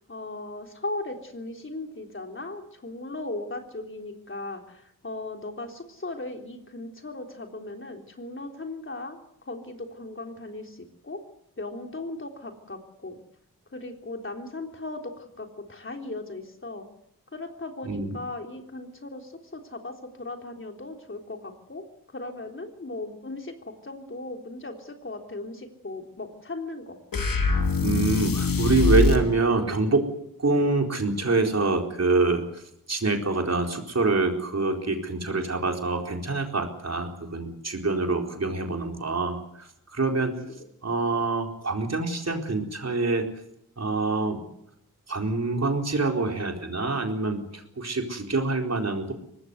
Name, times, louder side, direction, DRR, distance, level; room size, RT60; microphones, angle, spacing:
voice 1, 0.1-11.2 11.6-13.2 13.7-16.9 17.3-21.8 22.1-27.0 40.6-40.7, left 2 dB, 35° left, 4 dB, 3.7 m, -37 dB
voice 2, 17.8-18.2 27.8-30.1 30.4-32.6 32.9-40.4 40.8-43.3 43.8-44.4 45.1-49.1, right 3 dB, 45° right, 3 dB, 4.2 m, -26 dB
sound 1, 27.1-29.3, left 3 dB, 70° left, 2.8 m, -23 dB
24.0 x 19.5 x 8.1 m, 0.74 s
wide cardioid pair, 105°, 35 cm